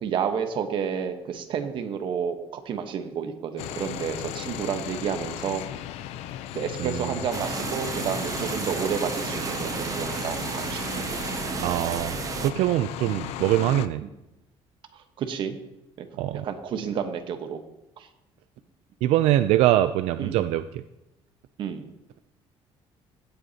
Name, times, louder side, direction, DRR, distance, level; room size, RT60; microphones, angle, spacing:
voice 1, 0.0-5.6 6.5-11.2 13.0-13.2 14.0-14.1 14.9-15.6 16.0-16.1 16.4-17.6 18.0-18.1 20.2-20.4 21.6-21.9, right 7 dB, 50° right, 7 dB, 1.0 m, -30 dB
sound 1, 3.6-13.9, left 12 dB, 90° left, 0.5 m, -36 dB
voice 2, 6.8-7.2 11.6-12.2 12.4-14.0 16.2-16.5 19.0-20.8, right 13 dB, 85° right, 11 dB, 0.4 m, -23 dB
sound 2, 7.3-12.5, right 7 dB, 30° right, 0.5 m, -32 dB
16.5 x 8.0 x 2.8 m, 0.94 s
cardioid pair, 160°, 11 cm